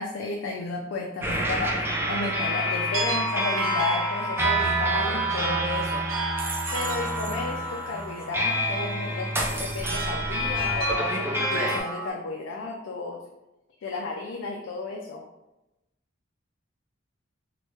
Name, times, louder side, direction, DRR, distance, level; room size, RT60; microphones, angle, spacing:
voice 1, 0.0-6.0 6.7-13.2 13.8-15.2, left 3 dB, 70° left, 1 dB, 0.3 m, -33 dB
sound 1, 1.2-11.8, right 1 dB, 10° right, 0.3 m, -28 dB
sound 2, 2.6-12.1, right 2 dB, 85° right, 0.5 m, -33 dB
3.0 x 2.2 x 3.1 m, 0.96 s
head